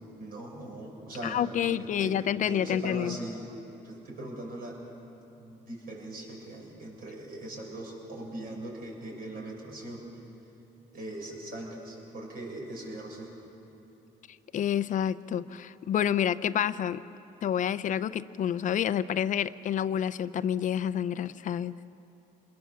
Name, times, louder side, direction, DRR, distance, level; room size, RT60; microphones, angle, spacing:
voice 1, 0.2-3.5 3.8-4.8 5.4-10.1 10.9-13.3, right 1 dB, 60° right, -1 dB, 6.8 m, -40 dB
voice 2, 1.2-3.2 14.5-17.0 17.4-21.7, left 9 dB, 50° left, 14 dB, 0.6 m, -28 dB
27.5 x 21.0 x 7.1 m, 2.9 s
cardioid pair, 110°, 17 cm